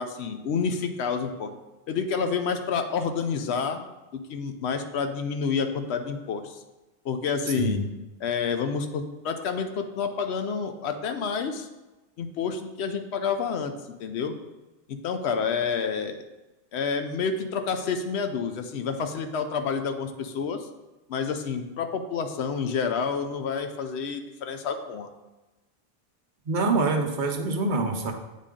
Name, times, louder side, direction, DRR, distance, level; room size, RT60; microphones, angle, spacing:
voice 1, 0.0-1.5 1.9-3.8 4.1-6.6 7.0-7.8 8.2-11.7 12.2-13.7 14.0-14.3 14.9-16.2 16.7-20.7 21.1-25.1, left 5 dB, 80° left, 7 dB, 0.9 m, -29 dB
voice 2, 7.5-7.9 26.5-28.1, right 3 dB, 50° right, 3 dB, 0.8 m, -25 dB
8.3 x 3.7 x 3.7 m, 1.1 s
omnidirectional pair, 1.1 m